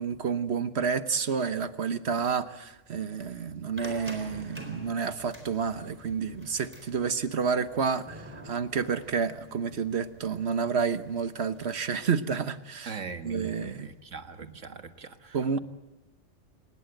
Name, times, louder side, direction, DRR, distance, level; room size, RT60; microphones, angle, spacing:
voice 1, 0.0-13.9 15.3-15.6, right 6 dB, 60° right, 1.3 m, -30 dB
sound 1, 3.8-11.9, equal, 10° right, 4.1 m, -48 dB
voice 2, 12.9-15.6, right 5 dB, 80° right, 1.9 m, -41 dB
27.0 x 20.5 x 8.0 m
omnidirectional pair, 1.3 m